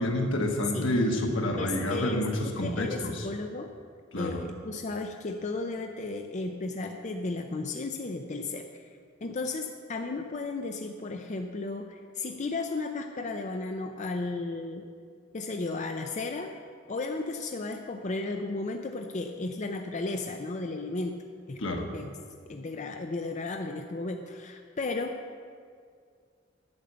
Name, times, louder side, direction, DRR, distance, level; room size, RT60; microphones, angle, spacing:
voice 1, 0.0-3.2 4.1-4.4 21.6-21.9, left 1 dB, 80° left, 2 dB, 1.5 m, -28 dB
voice 2, 1.6-3.7 4.2-8.9 9.2-14.8 15.3-16.6 16.9-21.2 21.5-22.2 22.5-25.2, left 3 dB, 40° left, 4 dB, 0.5 m, -34 dB
9.0 x 8.8 x 6.8 m, 2.1 s
head